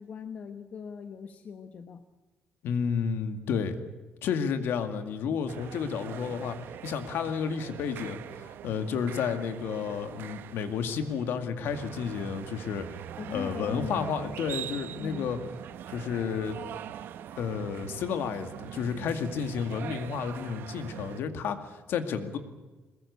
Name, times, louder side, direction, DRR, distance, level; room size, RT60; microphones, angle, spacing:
voice 1, 0.0-2.0 13.2-14.3 15.0-15.4, left 6 dB, 35° left, 8 dB, 1.1 m, -40 dB
voice 2, 2.6-3.8 4.2-6.6 6.8-12.9 13.3-15.4 15.9-16.6 17.4-22.4, left 6 dB, 65° left, 8 dB, 2.2 m, -31 dB
sound 1, 5.5-21.2, right 10 dB, 60° right, 0.9 m, -42 dB
22.5 x 20.5 x 8.3 m, 1.2 s
cardioid pair, 170°, 4 cm